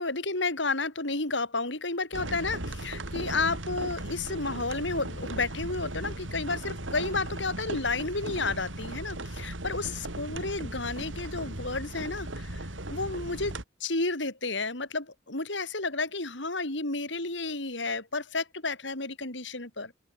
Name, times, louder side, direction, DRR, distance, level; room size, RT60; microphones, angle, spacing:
voice 1, 0.0-19.9, left 3 dB, 65° left, 4.5 m, -32 dB
sound 1, 2.1-13.6, right 1 dB, 75° right, 4.1 m, -37 dB
open air
head